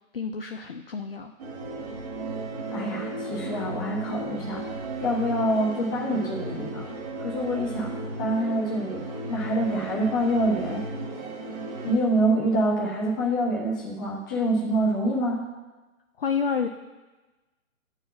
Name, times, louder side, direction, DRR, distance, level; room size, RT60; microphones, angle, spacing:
voice 1, 0.1-1.3 16.2-16.7, left 6 dB, 45° left, 5 dB, 0.4 m, -29 dB
sound 1, 1.4-12.0, right 2 dB, 30° right, 1.3 m, -35 dB
voice 2, 2.7-4.6 5.0-6.8 7.2-7.9 8.2-10.8 11.8-15.5, right 1 dB, 15° left, -3 dB, 1.0 m, -26 dB
8.7 x 4.8 x 7.5 m, 1.2 s
hypercardioid pair, 160°, 42 cm